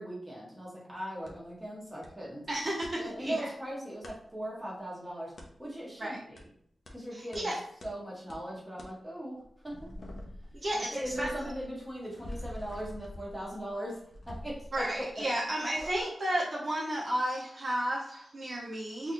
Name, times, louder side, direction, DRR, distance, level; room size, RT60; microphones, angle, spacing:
voice 1, 0.0-2.5 3.0-5.3 5.6-6.4 6.9-7.5 7.8-9.4 9.6-9.8 10.7-14.0 14.3-15.1, equal, 5° right, -5 dB, 1.2 m, -39 dB
sound 1, 1.3-1.4 2.0-2.1 2.4-2.9 4.0-4.2 5.4-5.5 6.4-6.5 6.9-7.0 7.3-7.4 7.8-7.9 8.3-8.4 8.8-8.9 9.4-15.4 15.8-16.0, left 1 dB, 55° left, 0.7 m, -46 dB
voice 2, 2.5-3.5 6.0-6.2 7.1-7.6 10.5-11.3 14.7-19.1, right 1 dB, 45° right, -4 dB, 0.8 m, -33 dB
3.8 x 2.5 x 3.0 m, 0.68 s
wide cardioid pair, 110°, 0 cm